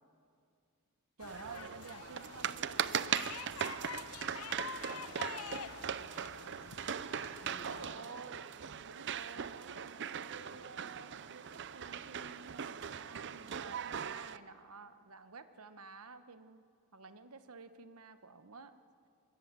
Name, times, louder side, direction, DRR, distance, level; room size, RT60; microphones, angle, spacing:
sound 1, 1.2-7.9, left 8 dB, 85° left, 0.6 m, -47 dB
voice 1, 1.2-3.2 7.6-8.5 8.8-16.6 16.9-18.7, right 4 dB, 90° right, 10 dB, 1.2 m, -52 dB
sound 2, 1.3-14.4, right 8 dB, 55° right, 0.6 m, -40 dB
voice 2, 4.8-6.8 7.2-8.1, left 2 dB, 50° left, 2 dB, 4.8 m, -54 dB
25.0 x 21.5 x 7.6 m, 2.4 s
head